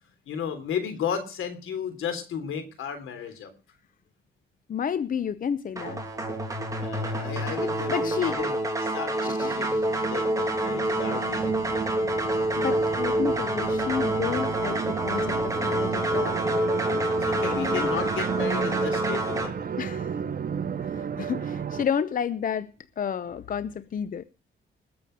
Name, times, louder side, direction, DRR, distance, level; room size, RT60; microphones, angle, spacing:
voice 1, 0.3-3.5 6.8-11.7 17.1-19.7, left 7 dB, 85° left, 3.4 m, -34 dB
voice 2, 4.7-6.0 7.9-8.4 9.2-9.8 12.6-16.4 17.4-17.9 19.8-20.2 20.8-22.7 23.0-24.2, left 7 dB, 45° left, 0.7 m, -31 dB
sound 1, 5.8-19.5, right 1 dB, 15° right, 2.8 m, -27 dB
sound 2, 9.1-21.9, right 7 dB, 45° right, 1.0 m, -33 dB
20.0 x 7.0 x 6.3 m
cardioid pair, 120°, 20 cm